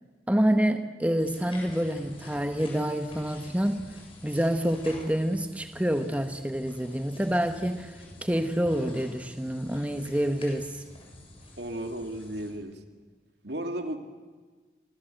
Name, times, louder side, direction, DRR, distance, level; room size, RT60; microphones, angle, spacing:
voice 1, 0.3-3.8 4.2-10.8, equal, 10° right, 7 dB, 1.2 m, -27 dB
sound 1, 1.2-12.5, left 1 dB, 30° left, 7.6 m, -48 dB
voice 2, 11.6-12.8 13.4-14.0, right 1 dB, 75° right, 5 dB, 2.6 m, -34 dB
28.5 x 26.0 x 8.0 m, 1.4 s
head